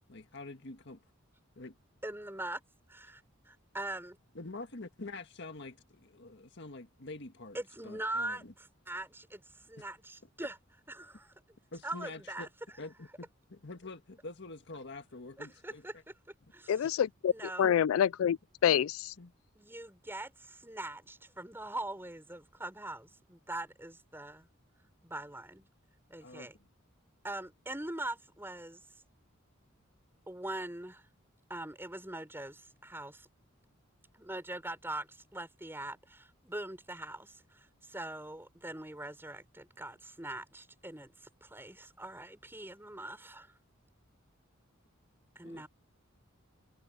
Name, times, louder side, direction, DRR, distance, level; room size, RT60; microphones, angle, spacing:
voice 1, 0.1-1.0 1.6-1.8 4.4-7.6 7.8-8.5 11.7-12.5 12.8-16.0 17.6-17.7 19.2-19.3 26.2-26.7 45.4-45.7, left 2 dB, 60° left, 1.7 m, -46 dB
voice 2, 2.0-2.6 2.9-4.2 7.5-10.5 11.0-11.3 11.8-12.5 15.4-16.1 16.5-16.7 17.2-17.8 19.6-24.5 25.0-25.7 26.1-26.5 27.2-28.8 30.3-31.0 31.5-33.3 34.1-43.5 45.4-45.7, right 1 dB, 10° right, 5.7 m, -42 dB
voice 3, 16.7-17.3 17.6-19.1, left 9 dB, 85° left, 0.3 m, -27 dB
head